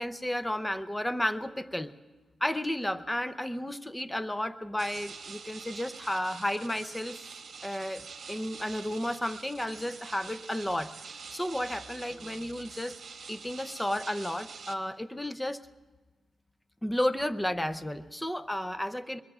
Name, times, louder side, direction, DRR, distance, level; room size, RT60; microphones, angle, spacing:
voice 1, 0.0-1.9 2.4-7.3 7.6-10.9 11.3-12.9 13.3-15.6 16.8-19.2, left 1 dB, 10° left, 11 dB, 0.6 m, -32 dB
sound 1, 4.8-14.7, right 5 dB, 60° right, 1.2 m, -46 dB
sound 2, 12.1-12.6, left 1 dB, 70° left, 5.3 m, -56 dB
23.0 x 21.5 x 2.4 m, 1.3 s
cardioid pair, 90°, 0 cm